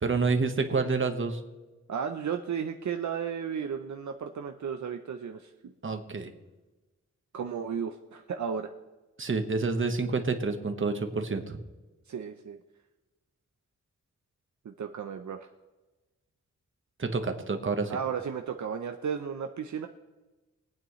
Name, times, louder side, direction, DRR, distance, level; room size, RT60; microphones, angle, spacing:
voice 1, 0.0-1.4 5.8-6.3 9.2-11.6 17.0-17.9, right 4 dB, 45° right, 6 dB, 1.2 m, -28 dB
voice 2, 1.9-5.7 7.3-8.7 12.1-12.6 14.6-15.5 17.9-19.9, right 7 dB, 70° right, 6 dB, 0.7 m, -34 dB
23.0 x 8.9 x 3.1 m, 1.1 s
wide cardioid pair, 130°, 30 cm